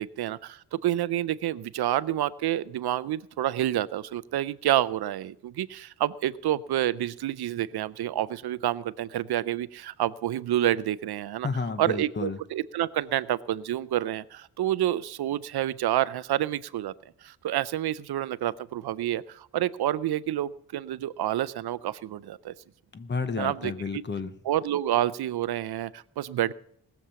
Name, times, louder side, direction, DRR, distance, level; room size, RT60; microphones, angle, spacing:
voice 1, 0.0-11.5 11.8-16.9 17.2-22.5 23.4-24.0 24.4-26.5, right 12 dB, 75° right, 17 dB, 0.5 m, -28 dB
voice 2, 11.4-12.4 22.9-24.3, left 4 dB, 30° left, 11 dB, 0.8 m, -31 dB
19.0 x 7.2 x 6.8 m, 0.69 s
wide cardioid pair, 175°, 39 cm